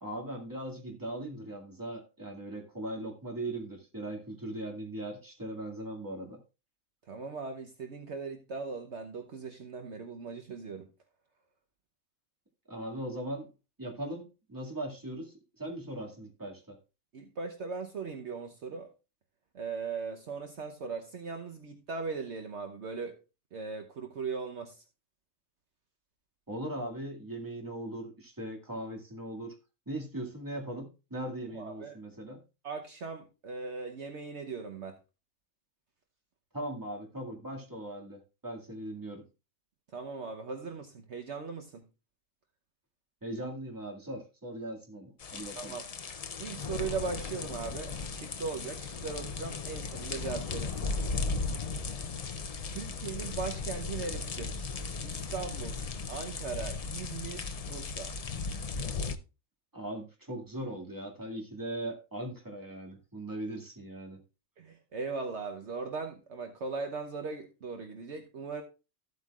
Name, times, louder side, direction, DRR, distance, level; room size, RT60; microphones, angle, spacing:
voice 1, 0.0-6.4 12.7-13.5 13.8-16.8 26.5-29.6 29.9-32.4 36.5-39.3 43.2-45.7 59.7-64.2, right 1 dB, 15° right, 2.1 m, -39 dB
voice 2, 7.1-10.9 17.1-18.9 19.5-23.2 23.5-24.8 31.5-32.0 32.6-35.0 39.9-41.9 45.6-45.8 46.4-50.9 52.7-54.7 55.0-55.8 56.1-58.1 64.6-68.6, right 4 dB, 60° right, 1.2 m, -39 dB
sound 1, 45.2-59.2, left 4 dB, 45° left, 0.5 m, -36 dB
14.0 x 8.2 x 2.4 m
omnidirectional pair, 1.4 m